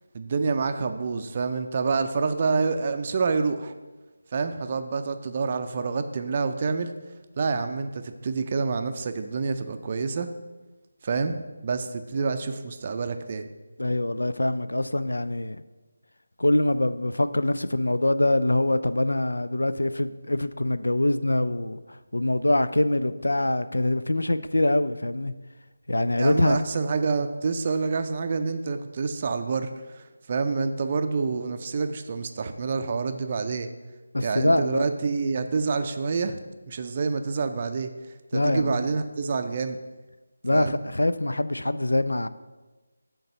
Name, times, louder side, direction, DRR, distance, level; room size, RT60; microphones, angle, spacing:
voice 1, 0.1-3.7 4.3-6.9 7.4-10.3 11.0-11.4 11.6-13.5 26.2-33.7 34.2-36.4 36.7-37.9 38.3-39.8 40.5-40.8, right 4 dB, 35° right, 8 dB, 0.4 m, -27 dB
voice 2, 13.8-15.6 16.4-25.3 25.9-26.6 34.1-34.9 38.3-38.8 40.4-42.3, left 1 dB, 85° left, 13 dB, 0.4 m, -24 dB
6.5 x 3.9 x 5.6 m, 1.2 s
figure-of-eight pair, 165°, 0 cm